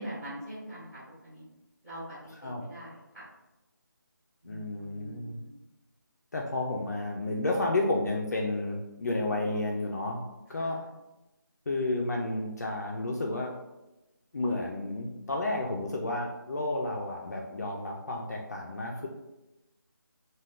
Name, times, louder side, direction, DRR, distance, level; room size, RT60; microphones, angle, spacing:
voice 1, 0.0-1.4 1.8-3.2 4.4-5.5 10.6-10.8, right 1 dB, 5° right, -11 dB, 1.5 m, -43 dB
voice 2, 4.4-5.4 6.3-10.2 10.5-10.8 11.7-13.5 14.3-19.1, left 2 dB, 50° left, 0 dB, 0.4 m, -31 dB
3.3 x 2.2 x 2.4 m, 0.99 s
figure-of-eight pair, 165°, 11 cm